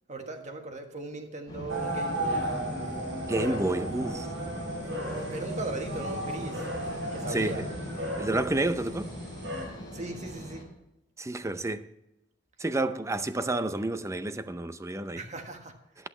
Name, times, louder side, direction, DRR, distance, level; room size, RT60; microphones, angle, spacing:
voice 1, 0.1-2.5 3.4-3.9 5.1-6.7 7.1-7.7 9.9-10.7 15.1-15.7, right 2 dB, 40° right, 1.6 m, -38 dB
sound 1, 1.5-10.6, equal, 20° left, 4.5 m, -39 dB
sound 2, 1.7-9.7, right 1 dB, 80° right, 3.9 m, -35 dB
voice 2, 3.3-4.3 7.3-7.7 8.2-9.1 11.2-11.9 12.6-15.2, right 2 dB, 15° right, 0.6 m, -30 dB
14.5 x 11.0 x 3.2 m
head